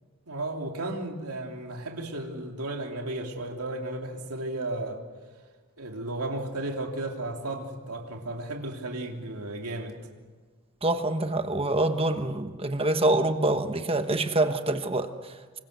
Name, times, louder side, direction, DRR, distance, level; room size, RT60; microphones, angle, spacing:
voice 1, 0.3-5.0 5.8-10.0, right 2 dB, 85° right, 2 dB, 3.2 m, -34 dB
voice 2, 10.8-15.6, right 2 dB, 25° right, 7 dB, 1.2 m, -26 dB
27.5 x 25.0 x 6.8 m, 1.4 s
head